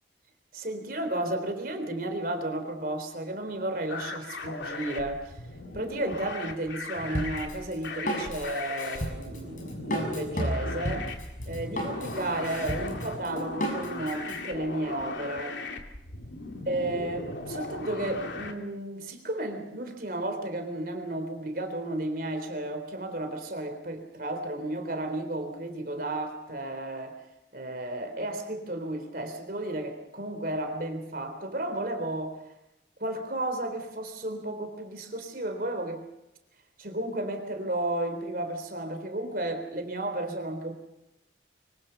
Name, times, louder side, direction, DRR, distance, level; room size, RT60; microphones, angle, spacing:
voice 1, 0.5-5.4 5.7-11.1 11.5-15.6 16.7-27.2 27.5-32.5 33.0-36.0 36.8-40.7, right 1 dB, 50° right, 6 dB, 3.7 m, -33 dB
sound 1, 3.9-18.5, left 2 dB, 75° left, 2.9 m, -38 dB
Drum kit, 7.1-14.4, equal, 45° left, 6.9 m, -33 dB
25.0 x 24.5 x 5.8 m, 0.91 s
head